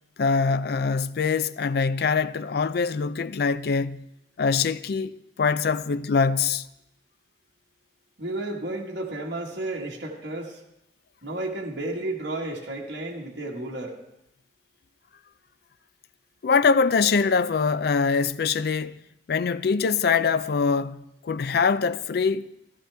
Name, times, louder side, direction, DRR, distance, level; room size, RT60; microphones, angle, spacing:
voice 1, 0.2-4.1 4.4-6.7 16.4-19.0 19.3-22.5, left 5 dB, 60° left, 0.4 m, -23 dB
voice 2, 8.2-10.6 11.2-13.9, right 2 dB, 65° right, 1.6 m, -32 dB
14.0 x 13.0 x 3.4 m
head